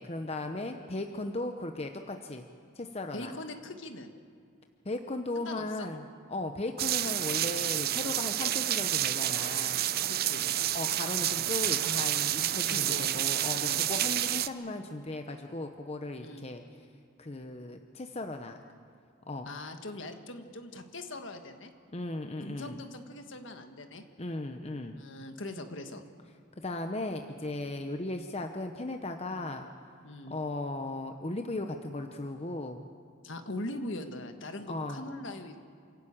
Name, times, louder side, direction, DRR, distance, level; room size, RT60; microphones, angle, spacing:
voice 1, 0.0-2.5 2.8-3.3 4.8-9.8 10.7-16.6 17.2-18.6 19.3-19.5 21.9-22.8 24.2-25.0 26.6-29.7 30.3-32.8 34.7-35.0, left 2 dB, 30° left, 5 dB, 0.8 m, -37 dB
voice 2, 3.1-4.1 5.3-5.9 9.9-10.4 12.7-13.1 13.4-13.9 16.2-16.5 19.4-21.7 22.4-24.0 24.9-26.0 29.3-29.5 30.0-30.4 33.2-35.6, left 2 dB, 65° left, 6 dB, 1.7 m, -41 dB
sound 1, 6.8-14.5, right 12 dB, 50° right, 0.6 m, -29 dB
28.0 x 12.5 x 8.7 m, 2.3 s
head